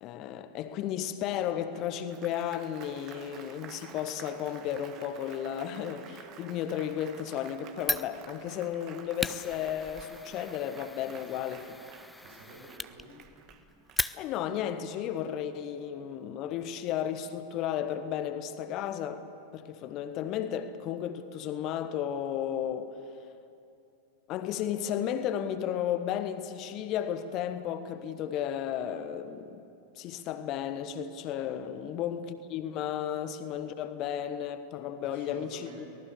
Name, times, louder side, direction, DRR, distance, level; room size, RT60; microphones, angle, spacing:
voice 1, 0.0-11.6 14.1-19.2 19.5-23.0 24.3-29.6 29.9-35.9, left 10 dB, 40° left, 1.3 m, -34 dB
Applause, 1.7-14.5, right 8 dB, 35° right, 1.5 m, -51 dB
Fire, 7.8-14.6, left 2 dB, 5° left, 0.5 m, -38 dB
voice 2, 12.2-13.2 31.7-31.9 35.0-35.9, right 2 dB, 70° right, 7.5 m, -51 dB
24.0 x 19.0 x 7.0 m
figure-of-eight pair, 90°, 0 cm